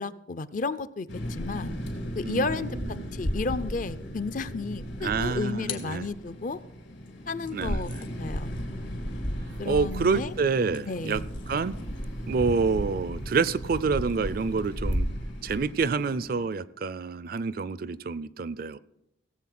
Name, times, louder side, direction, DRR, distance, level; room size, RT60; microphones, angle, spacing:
voice 1, 0.0-1.8 2.1-2.8 3.1-6.6 7.3-7.9 8.2-8.5 9.6-10.3 10.9-11.2, left 3 dB, 45° left, 0.5 m, -32 dB
sound 1, 1.1-16.5, equal, 70° left, 3.5 m, -35 dB
voice 2, 2.2-3.1 5.0-6.1 7.5-8.0 9.6-11.2 11.5-11.8 12.3-15.1 15.4-18.8, right 4 dB, 50° right, 0.4 m, -28 dB
sound 2, 5.7-6.8 7.4-15.0, left 10 dB, 85° left, 1.8 m, -49 dB
sound 3, 9.5-15.0, right 1 dB, 85° right, 1.1 m, -41 dB
17.0 x 7.8 x 6.0 m
head